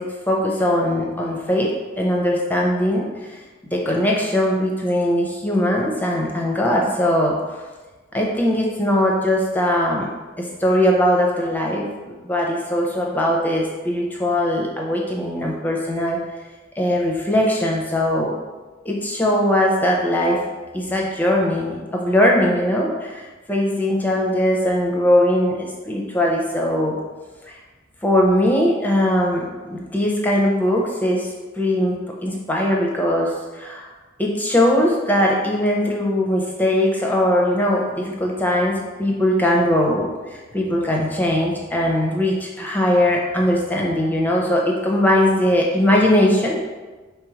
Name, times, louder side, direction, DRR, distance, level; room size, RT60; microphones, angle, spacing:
voice 1, 0.0-3.3 3.7-7.6 8.1-10.1 10.4-16.2 16.8-18.3 18.8-20.5 20.7-27.0 27.5-27.6 28.0-32.0 32.2-33.9 34.2-40.1 40.5-46.6, left 1 dB, 10° left, -2 dB, 0.5 m, -20 dB
3.4 x 3.0 x 4.7 m, 1.3 s
head